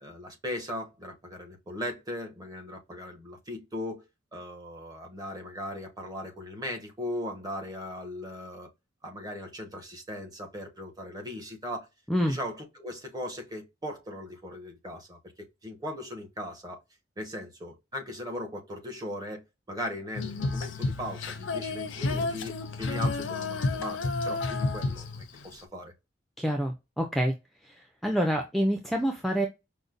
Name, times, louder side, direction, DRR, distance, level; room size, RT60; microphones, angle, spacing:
voice 1, 0.0-4.0 4.3-8.7 9.0-11.9 12.3-16.8 17.2-25.9, left 1 dB, 20° right, 1.1 m, -38 dB
Female singing, 20.1-25.6, left 3 dB, 80° left, 0.5 m, -31 dB
voice 2, 26.4-27.3 27.6-29.5, equal, ahead, 0.5 m, -27 dB
5.2 x 2.1 x 2.5 m
head